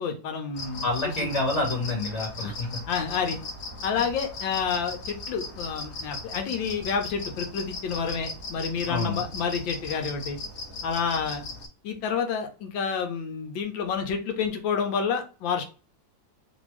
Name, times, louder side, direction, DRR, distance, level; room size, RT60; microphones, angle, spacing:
voice 1, 0.0-0.9 1.2-1.4 2.4-2.5 2.9-3.4 3.8-10.4 10.8-11.4 11.8-15.6, left 6 dB, 85° left, 4 dB, 1.5 m, -29 dB
sound 1, 0.5-11.7, left 3 dB, 60° left, 1.3 m, -38 dB
voice 2, 0.8-2.7 4.0-4.1 8.9-9.2, left 2 dB, 45° left, -2 dB, 1.3 m, -28 dB
3.3 x 2.7 x 3.1 m, 0.34 s
omnidirectional pair, 2.0 m